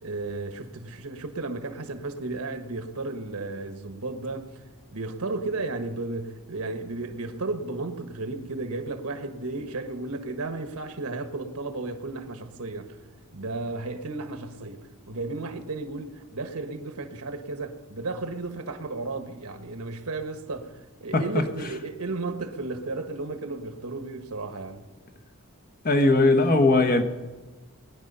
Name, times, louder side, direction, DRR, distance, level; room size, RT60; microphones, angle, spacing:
voice 1, 0.0-4.6 4.9-13.0 13.3-24.9, right 3 dB, 80° right, 1.4 m, -34 dB
voice 2, 25.8-27.0, left 2 dB, 40° left, 1.1 m, -19 dB
20.0 x 10.5 x 5.5 m
head